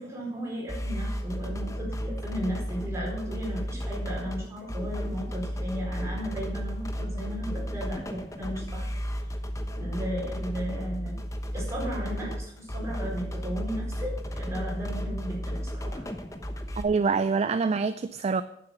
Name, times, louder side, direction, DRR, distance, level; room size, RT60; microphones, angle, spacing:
voice 1, 0.0-8.9 9.8-11.2 11.5-16.1, equal, 15° right, -3 dB, 4.6 m, -35 dB
sound 1, 0.7-16.8, equal, 20° left, 1.0 m, -33 dB
voice 2, 16.8-18.4, right 4 dB, 35° right, 12 dB, 0.4 m, -25 dB
9.8 x 7.5 x 7.2 m, 0.76 s
head